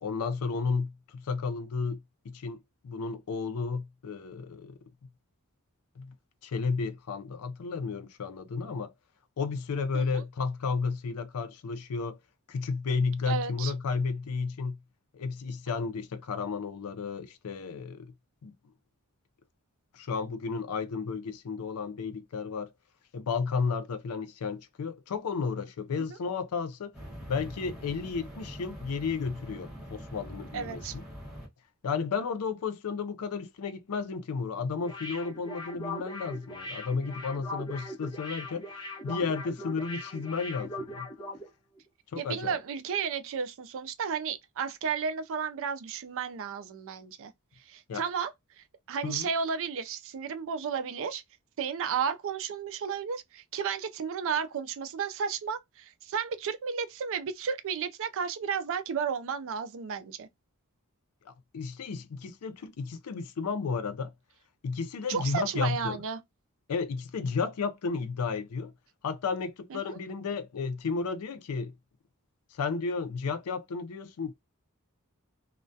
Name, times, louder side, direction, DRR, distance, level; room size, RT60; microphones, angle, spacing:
voice 1, 0.0-2.6 2.8-4.8 6.0-6.1 6.4-8.9 9.4-12.2 12.5-14.8 15.1-18.1 18.4-18.5 19.9-22.7 23.1-26.9 27.3-31.0 31.8-38.7 39.0-41.1 42.1-42.6 47.9-48.0 49.0-49.3 61.3-64.1 64.6-66.0 66.7-68.7 69.0-71.7 72.5-74.3, left 5 dB, 80° left, 0.4 m, -33 dB
voice 2, 13.3-13.7 26.0-26.2 30.5-30.9 42.2-47.3 47.7-48.3 48.6-51.2 51.6-60.3 65.1-66.2 69.7-70.0, right 6 dB, 65° right, 0.4 m, -33 dB
sound 1, 26.9-31.5, equal, ahead, 1.1 m, -44 dB
sound 2, 34.8-41.5 41.8-41.9, left 2 dB, 20° left, 0.7 m, -40 dB
2.3 x 2.1 x 2.6 m
head